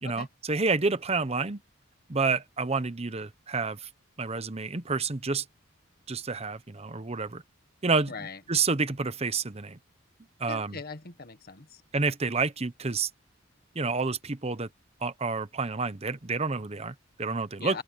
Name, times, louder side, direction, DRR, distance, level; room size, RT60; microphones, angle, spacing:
voice 1, 0.0-1.6 2.1-3.9 4.2-5.4 6.1-7.4 7.8-8.1 8.5-9.8 10.4-10.8 11.9-13.1 13.7-14.7 15.0-17.8, right 4 dB, 30° right, 0.9 m, -29 dB
voice 2, 8.1-8.4 10.5-11.8 17.6-17.8, left 4 dB, 50° left, 1.4 m, -40 dB
open air
head